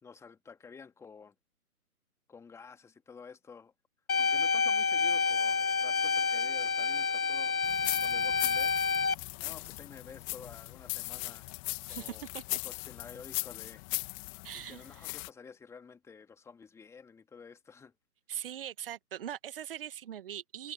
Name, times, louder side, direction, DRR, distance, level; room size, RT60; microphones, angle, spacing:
voice 1, 0.0-1.3 2.3-3.7 4.2-7.6 8.0-8.7 9.4-11.5 11.9-12.3 12.6-13.9 14.5-17.9, left 5 dB, 5° left, 2.9 m, -51 dB
sound 1, 4.1-9.1, left 5 dB, 65° left, 1.6 m, -28 dB
sound 2, 7.6-15.3, left 32 dB, 20° left, 2.7 m, -39 dB
voice 2, 11.9-12.6 14.4-15.1 18.3-20.7, right 10 dB, 35° right, 2.0 m, -41 dB
figure-of-eight pair, 135°, 45 cm